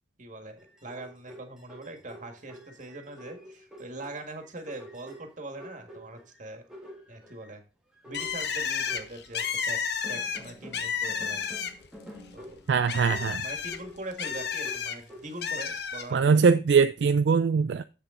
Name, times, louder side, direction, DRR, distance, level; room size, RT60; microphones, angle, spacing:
voice 1, 0.2-6.6 7.1-7.6 8.0-11.6 12.3-12.6 13.4-16.4, right 2 dB, 45° right, 1.8 m, -42 dB
sound 1, 0.6-6.4 6.7-7.5 7.9-9.6 10.0-15.4, equal, 5° right, 1.5 m, -48 dB
Bird, 8.1-12.0 12.3-15.0 15.4-16.1, left 6 dB, 65° left, 0.9 m, -32 dB
voice 2, 12.7-13.4 16.1-17.8, right 5 dB, 70° right, 0.4 m, -22 dB
7.9 x 6.8 x 3.7 m
head